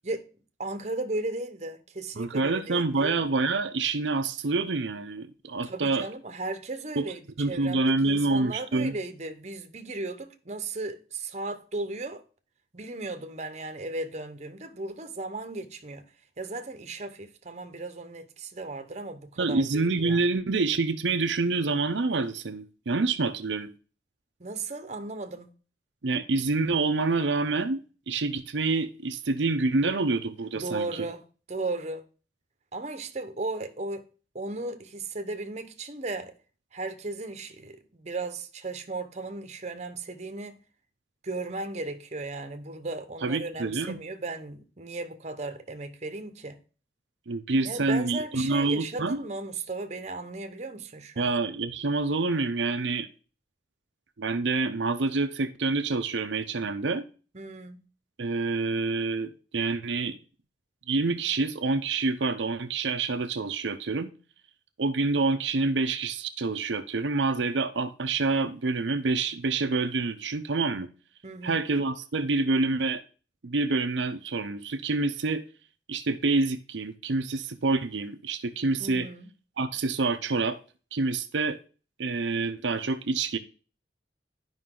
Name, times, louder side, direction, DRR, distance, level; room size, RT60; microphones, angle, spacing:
voice 1, 0.6-3.2 5.6-7.2 7.5-12.2 12.7-16.0 16.4-20.2 24.4-25.5 30.5-31.2 31.5-32.0 32.7-34.0 34.3-36.3 36.7-40.6 41.2-46.6 47.6-51.3 57.3-57.8 71.2-71.6 78.8-79.3, right 2 dB, 40° right, 0.9 m, -36 dB
voice 2, 2.2-6.1 7.0-9.0 19.4-23.7 26.0-27.8 28.1-31.1 43.2-44.0 47.3-49.2 51.2-53.1 54.2-57.0 58.2-60.2 60.9-64.1 64.8-70.9 71.4-73.0 73.4-75.4 75.9-79.1 79.6-80.6 80.9-81.6 82.0-83.4, right 3 dB, 85° right, 0.7 m, -27 dB
11.0 x 5.3 x 3.8 m
head